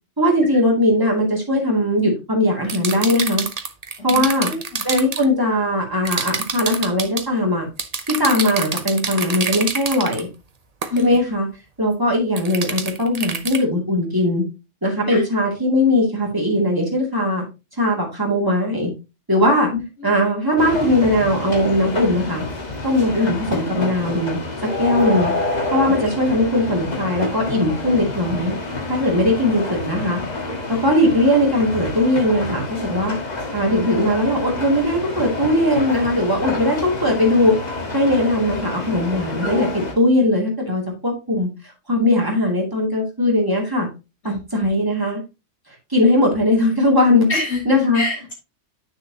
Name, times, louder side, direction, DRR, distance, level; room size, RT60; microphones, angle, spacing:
voice 1, 0.2-3.4 4.0-4.5 4.8-7.7 8.1-10.3 11.0-11.5 11.8-14.4 14.8-17.4 17.8-18.9 19.3-19.7 20.0-22.4 22.8-25.3 25.7-28.6 28.9-30.2 30.7-33.2 33.5-37.5 37.9-39.7 40.0-41.5 41.9-43.9 44.5-45.2 45.9-47.3 47.7-48.0, left 1 dB, 15° right, -2 dB, 2.6 m, -19 dB
sound 1, 2.7-5.2 6.1-7.3 7.8-10.2 10.8-11.0 12.4-13.6, right 5 dB, 35° right, 0.9 m, -26 dB
voice 2, 4.0-4.8 10.9-11.2 15.1-15.2 19.7-20.1 23.1-23.3 44.2-44.6 47.3-47.6 47.9-48.3, left 3 dB, 65° left, -2 dB, 3.3 m, -27 dB
sound 2, 20.6-39.9, left 2 dB, 35° left, 1.6 m, -28 dB
9.4 x 6.5 x 2.9 m, 0.28 s
omnidirectional pair, 1.2 m